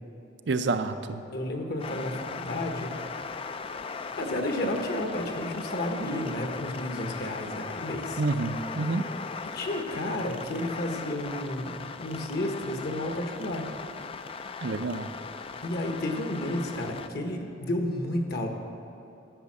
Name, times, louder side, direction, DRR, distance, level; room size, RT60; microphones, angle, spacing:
voice 1, 0.5-1.2 8.2-9.0 14.6-15.1, right 3 dB, 65° right, 8 dB, 0.6 m, -28 dB
voice 2, 1.3-2.9 4.2-8.2 9.5-13.6 15.6-18.5, left 1 dB, 55° left, 3 dB, 1.2 m, -31 dB
sound 1, 1.8-17.1, left 5 dB, 30° left, 0.4 m, -38 dB
12.0 x 6.4 x 7.5 m, 2.9 s
head